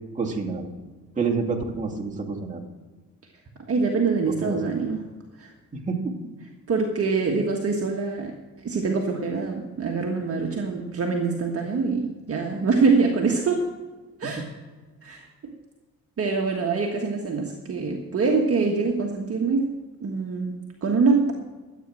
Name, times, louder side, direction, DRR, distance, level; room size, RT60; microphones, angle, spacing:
voice 1, 0.1-0.7 1.1-2.6 4.3-4.6 5.9-6.1 14.2-14.3, right 4 dB, 20° right, -1 dB, 2.4 m, -28 dB
voice 2, 3.7-5.0 5.4-5.5 6.7-8.3 8.6-13.7 14.2-14.4 15.0-15.5 16.2-19.7 20.0-21.3, right 4 dB, 40° right, 1 dB, 1.6 m, -24 dB
13.0 x 8.8 x 6.3 m, 1.3 s
cardioid pair, 95°, 35 cm